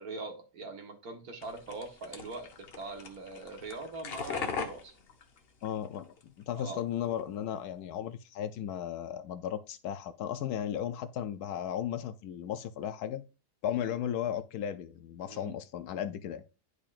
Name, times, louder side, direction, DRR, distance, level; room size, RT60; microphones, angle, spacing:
voice 1, 0.0-4.9 6.6-6.8 13.7-13.9 15.3-15.5, right 3 dB, 65° right, 1.8 m, -42 dB
sound 1, 1.4-6.2 6.5-7.2, left 5 dB, 45° left, 0.9 m, -41 dB
voice 2, 5.6-13.2 13.6-16.4, left 10 dB, 75° left, 1.0 m, -35 dB
10.5 x 4.9 x 2.5 m
omnidirectional pair, 1.8 m